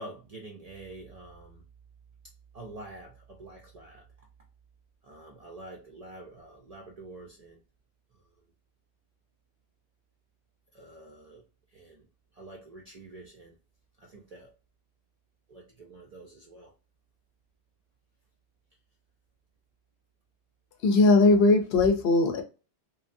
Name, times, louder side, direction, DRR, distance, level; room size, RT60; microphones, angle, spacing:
voice 1, 0.0-1.7 2.5-4.1 5.0-7.6 8.1-8.2 10.7-13.6 14.0-14.5 15.5-16.7, right 2 dB, 60° right, 0.4 m, -47 dB
voice 2, 20.8-22.4, left 3 dB, 70° left, 0.8 m, -20 dB
3.0 x 2.1 x 2.5 m
omnidirectional pair, 1.1 m